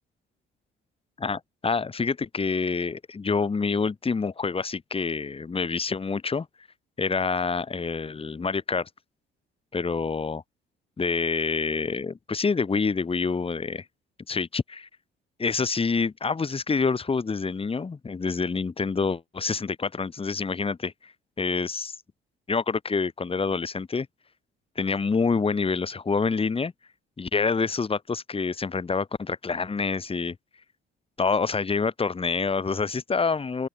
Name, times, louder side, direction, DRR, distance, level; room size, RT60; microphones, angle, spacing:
voice 1, 1.2-6.5 7.0-8.9 9.7-10.4 11.0-13.8 14.3-14.9 15.4-21.1 21.4-22.0 22.5-24.1 24.8-26.7 27.2-30.4 31.2-33.7, left 4 dB, 30° left, 3.8 m, -27 dB
open air
cardioid pair, 100°, 20 cm